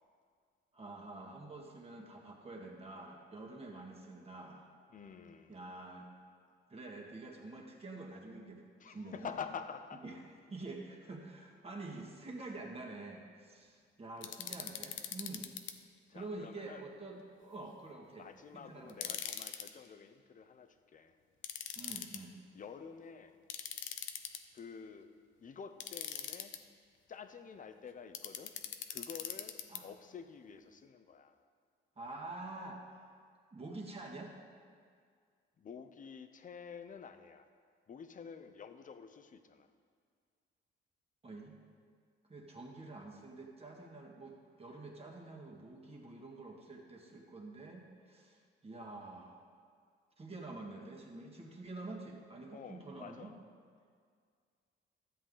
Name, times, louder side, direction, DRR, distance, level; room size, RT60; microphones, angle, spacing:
voice 1, 0.7-4.7 5.5-6.1 6.7-8.6 8.9-9.4 10.0-10.2 10.5-15.5 16.1-18.3 18.5-19.1 21.8-22.3 29.7-29.9 32.0-32.8 33.5-34.3 41.2-41.6 42.3-49.4 50.2-53.3, right 2 dB, 30° right, 0 dB, 1.9 m, -47 dB
voice 2, 4.9-5.5 8.8-10.0 16.1-16.8 18.2-21.1 22.5-23.4 24.5-25.1 25.4-26.5 27.1-28.5 28.9-29.5 29.8-31.3 35.6-37.5 37.9-39.7 52.5-53.3, left 6 dB, 40° left, 9 dB, 0.7 m, -48 dB
sound 1, 14.2-15.7 18.9-19.7 21.4-22.2 23.5-24.6 25.8-26.6 28.1-29.8, left 9 dB, 75° left, 0.7 m, -41 dB
13.0 x 7.9 x 3.9 m, 2.1 s
cardioid pair, 90°, 20 cm